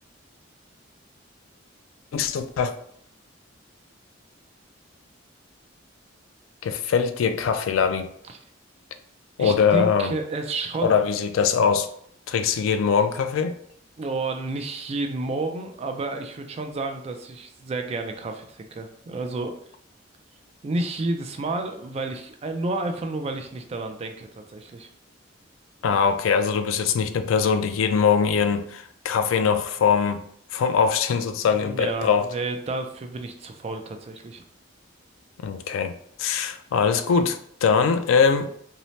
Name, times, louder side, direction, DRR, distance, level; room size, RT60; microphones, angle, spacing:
voice 1, 2.1-2.7 6.6-8.1 9.4-10.1 10.8-11.9 12.3-13.6 25.8-30.2 30.5-32.3 35.4-38.5, left 6 dB, 85° left, 0.3 m, -22 dB
voice 2, 9.4-11.0 14.0-19.6 20.6-24.9 31.4-34.4, right 2 dB, 30° right, 0.3 m, -30 dB
2.7 x 2.0 x 3.1 m
head